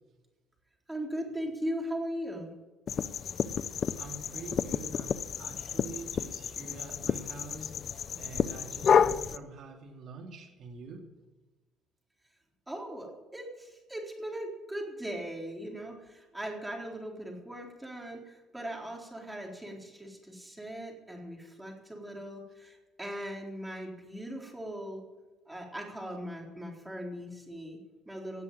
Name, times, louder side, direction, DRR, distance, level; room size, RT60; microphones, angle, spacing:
voice 1, 0.9-2.5 12.7-25.0 25.5-28.4, equal, 5° right, -1 dB, 3.9 m, -39 dB
sound 1, 2.9-9.4, left 7 dB, 40° left, 0.6 m, -30 dB
voice 2, 3.7-11.1, right 4 dB, 50° right, 1 dB, 3.0 m, -46 dB
18.0 x 7.7 x 9.0 m, 1.2 s
cardioid pair, 135°, 0 cm